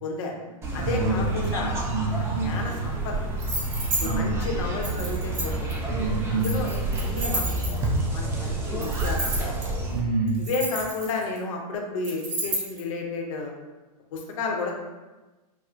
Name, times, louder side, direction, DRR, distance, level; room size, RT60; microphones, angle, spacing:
voice 1, 0.0-0.3 0.7-1.8 2.3-3.2 4.0-5.8 6.3-7.8 8.1-9.5 10.4-13.5 14.1-14.7, left 3 dB, 55° left, 1 dB, 0.7 m, -32 dB
sound 1, 0.6-10.0, right 2 dB, 10° right, 0.4 m, -29 dB
voice 2, 0.8-2.6 4.0-4.4 5.9-6.6 9.9-10.4, right 3 dB, 85° right, -2 dB, 1.0 m, -27 dB
sound 2, 3.4-4.1 4.8-5.7 6.4-8.0 8.8-9.6 10.3-11.4 12.0-12.8, right 1 dB, 50° right, 1.2 m, -31 dB
4.3 x 2.0 x 2.5 m, 1.2 s
hypercardioid pair, 135°, 20 cm